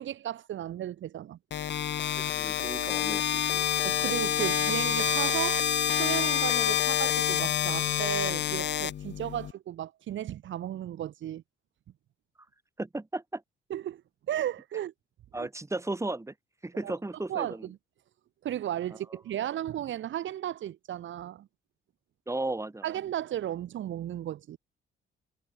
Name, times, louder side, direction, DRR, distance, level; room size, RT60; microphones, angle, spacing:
voice 1, 0.0-1.4 3.8-5.6 6.0-11.4 13.7-14.0 14.3-14.9 15.4-15.5 16.8-16.9 17.3-17.8 18.4-21.5 22.8-24.6, right 11 dB, 75° right, 5.1 m, -34 dB
sound 1, 1.5-9.5, left 10 dB, 65° left, 2.2 m, -27 dB
voice 2, 2.2-3.7 12.8-13.4 15.3-16.3 16.6-17.7 19.1-19.2 22.3-22.8, right 2 dB, 15° right, 5.7 m, -35 dB
cardioid pair, 90°, 20 cm